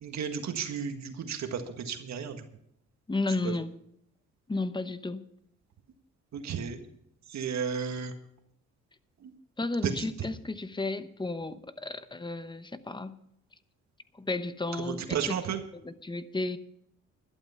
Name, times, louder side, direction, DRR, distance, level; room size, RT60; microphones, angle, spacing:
voice 1, 0.0-2.4 3.4-3.5 6.3-6.8 7.3-8.1 9.2-9.3 9.8-10.0 14.8-15.6, right 7 dB, 65° right, 6 dB, 1.7 m, -33 dB
voice 2, 3.1-3.7 4.5-5.2 9.6-13.2 14.1-15.4 15.7-16.6, left 2 dB, 15° left, 12 dB, 0.9 m, -33 dB
12.0 x 12.0 x 5.6 m, 0.72 s
cardioid pair, 90°, 30 cm